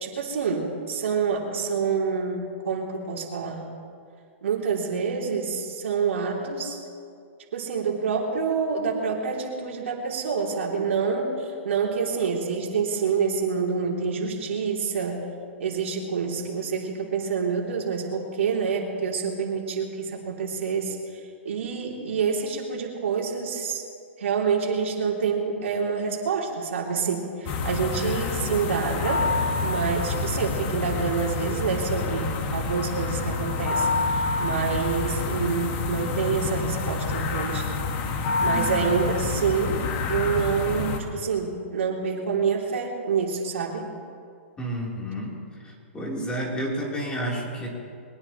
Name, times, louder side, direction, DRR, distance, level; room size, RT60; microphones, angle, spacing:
voice 1, 0.0-3.6 4.4-6.8 7.5-15.2 15.6-21.0 21.4-23.8 24.2-29.3 29.6-37.7 38.4-43.8, right 5 dB, 80° right, -1 dB, 3.0 m, -27 dB
sound 1, 27.5-41.0, left 4 dB, 40° left, 1.8 m, -28 dB
voice 2, 38.4-38.9 44.6-47.7, right 1 dB, 15° left, -3 dB, 3.5 m, -31 dB
22.5 x 18.5 x 3.1 m, 2.3 s
hypercardioid pair, 140°, 7 cm